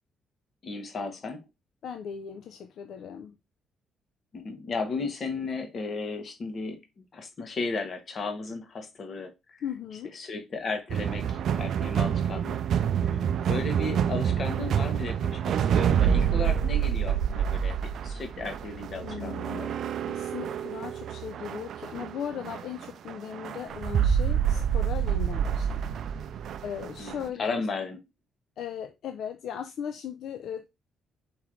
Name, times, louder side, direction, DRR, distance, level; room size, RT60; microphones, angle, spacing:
voice 1, 0.6-1.4 4.3-6.8 7.1-9.6 10.1-12.6 13.0-17.8 18.0-19.7 27.0-28.0, left 3 dB, 50° left, 1.2 m, -35 dB
voice 2, 1.8-3.3 9.6-10.1 12.8-13.3 19.0-19.7 20.1-25.9 26.6-27.6 28.6-30.7, left 8 dB, 75° left, 0.5 m, -38 dB
sound 1, 10.9-27.3, right 8 dB, 70° right, 0.4 m, -27 dB
4.6 x 3.1 x 3.7 m
cardioid pair, 90°, 0 cm